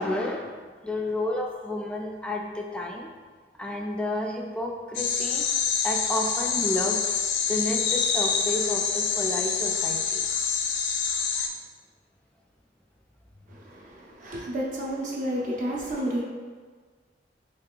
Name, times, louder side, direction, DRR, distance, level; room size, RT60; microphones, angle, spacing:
voice 1, 0.0-3.1 3.6-5.5 5.8-7.2 7.5-10.2, left 1 dB, 5° left, 0 dB, 0.3 m, -31 dB
sound 1, 4.9-11.5, left 6 dB, 80° left, 0.4 m, -26 dB
voice 2, 13.5-16.2, right 1 dB, 45° right, -4 dB, 0.5 m, -31 dB
3.0 x 2.8 x 3.7 m, 1.5 s
head